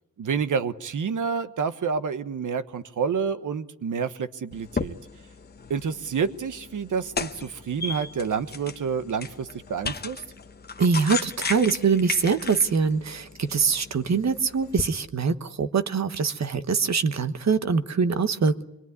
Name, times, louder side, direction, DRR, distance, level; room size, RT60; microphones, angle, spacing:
voice 1, 0.2-5.0 5.7-10.2, right 6 dB, 85° right, 11 dB, 1.3 m, -28 dB
sound 1, 4.5-14.9, left 4 dB, 35° left, 1.0 m, -36 dB
voice 2, 10.8-18.7, right 5 dB, 60° right, 10 dB, 1.2 m, -23 dB
25.5 x 22.0 x 9.6 m, 0.90 s
wide cardioid pair, 105°, 30 cm